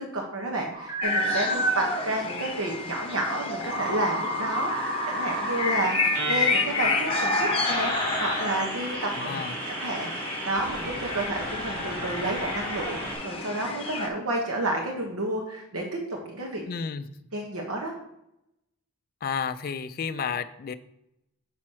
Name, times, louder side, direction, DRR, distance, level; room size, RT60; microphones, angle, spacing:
voice 1, 0.0-9.4 9.8-10.1 10.5-16.0 16.2-16.6 17.3-17.9, right 1 dB, 75° right, 0 dB, 1.1 m, -30 dB
sound 1, 0.7-1.7 2.5-13.1, right 1 dB, 55° right, 2.7 m, -33 dB
sound 2, 1.0-14.1, left 3 dB, 25° left, 0.9 m, -30 dB
voice 2, 9.2-9.6 16.7-17.1 19.2-20.7, left 6 dB, 40° left, 9 dB, 0.3 m, -31 dB
6.3 x 4.3 x 6.1 m, 0.83 s
head